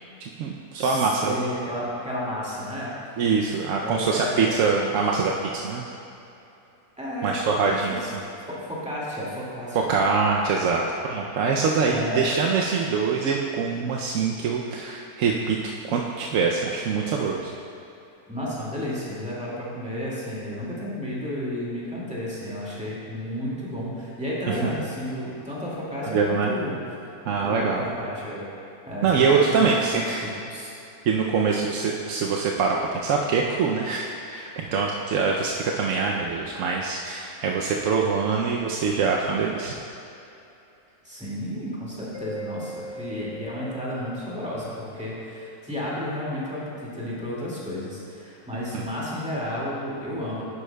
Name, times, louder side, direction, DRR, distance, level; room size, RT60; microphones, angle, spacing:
voice 1, 0.2-1.4 3.2-5.9 7.2-8.0 9.7-10.8 11.1-15.6 15.9-17.5 24.5-24.6 26.0-26.5 27.2-27.9 29.0-30.3 31.1-39.7 48.7-48.8, right 5 dB, 65° right, -1 dB, 0.9 m, -24 dB
voice 2, 0.8-2.9 3.8-4.6 7.0-7.4 7.6-7.8 8.5-9.9 11.9-12.2 18.3-26.8 27.4-28.5 28.9-30.7 41.0-50.4, left 1 dB, 5° right, -7 dB, 2.0 m, -32 dB
Mallet percussion, 42.1-44.7, right 1 dB, 35° right, 1.9 m, -39 dB
11.0 x 9.8 x 2.3 m, 2.8 s
omnidirectional pair, 1.6 m